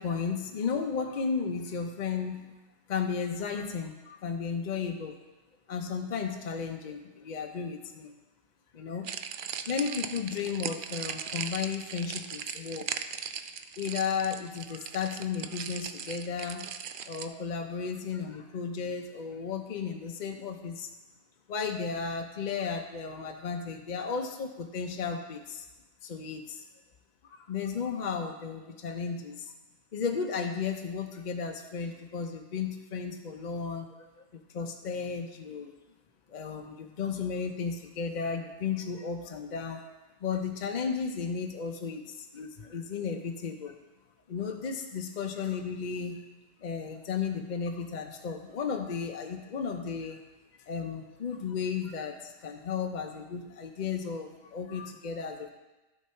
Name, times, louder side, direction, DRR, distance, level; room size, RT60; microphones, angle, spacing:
voice 1, 0.0-2.5 2.9-5.1 5.7-8.1 8.7-9.1 9.7-12.9 13.8-16.7 17.1-20.9 21.5-25.7 26.0-26.6 27.3-29.5 29.9-33.9 34.5-35.7 36.3-39.8 40.2-43.7 44.3-46.2 46.6-50.2 50.7-55.5, left 6 dB, 45° left, 4 dB, 0.6 m, -34 dB
sound 1, 9.0-17.3, right 8 dB, 70° right, 0.5 m, -38 dB
11.5 x 6.6 x 4.4 m, 1.1 s
omnidirectional pair, 1.4 m